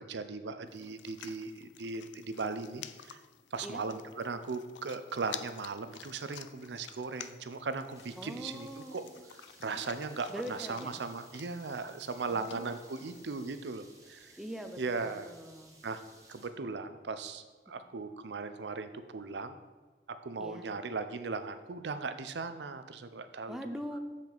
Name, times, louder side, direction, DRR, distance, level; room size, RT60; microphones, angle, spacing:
voice 1, 0.0-3.2 3.5-9.0 9.6-14.4 14.8-15.3 15.8-16.0 16.3-19.6 20.1-23.6, right 4 dB, 75° right, 10 dB, 0.6 m, -38 dB
sound 1, 0.7-13.6, left 10 dB, 90° left, 0.4 m, -51 dB
sound 2, 7.9-16.5, right 2 dB, 20° right, 1.1 m, -59 dB
voice 2, 8.2-9.1 10.3-11.0 12.2-12.7 14.4-15.8 20.4-20.7 23.5-24.0, equal, 5° right, 6 dB, 0.6 m, -42 dB
7.5 x 7.3 x 4.0 m, 1.3 s
head